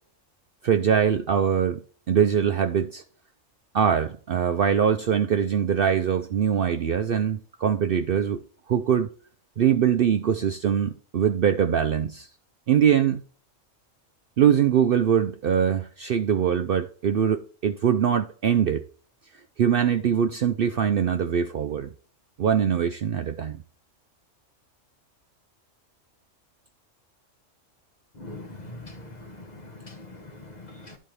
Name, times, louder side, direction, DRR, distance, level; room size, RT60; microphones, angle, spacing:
voice 1, 0.6-3.0 3.7-8.4 8.7-9.1 9.6-12.3 12.7-13.2 14.4-18.8 19.6-21.9 22.4-23.6, right 8 dB, 60° right, 0.6 m, -22 dB
voice 2, 28.2-29.9 30.6-30.9, left 2 dB, 35° left, 1.3 m, -42 dB
12.5 x 4.2 x 3.3 m
omnidirectional pair, 1.3 m